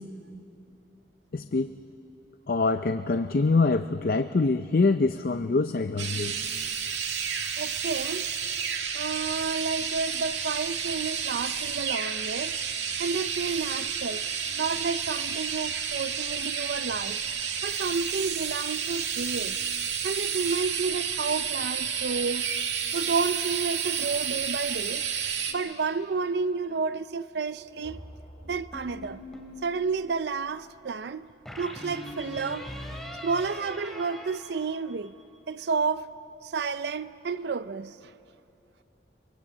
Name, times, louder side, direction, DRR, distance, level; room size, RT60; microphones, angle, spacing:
voice 1, 1.3-1.7 2.5-6.6, left 3 dB, 55° left, 0.5 m, -25 dB
sound 1, 6.0-25.5, right 7 dB, 90° right, 1.8 m, -31 dB
voice 2, 7.6-8.3 8.9-12.6 13.0-14.2 14.6-17.2 17.6-19.6 20.0-22.5 22.9-25.0 25.5-28.0 28.4-29.2 29.6-31.3 31.6-32.7 33.2-35.1 35.5-36.1 36.4-37.9, right 4 dB, 65° right, 0.5 m, -31 dB
sound 2, 27.5-31.5, equal, 30° left, 2.3 m, -50 dB
sound 3, 28.7-29.6 31.5-35.2, left 1 dB, ahead, 3.1 m, -41 dB
23.5 x 22.5 x 8.4 m
head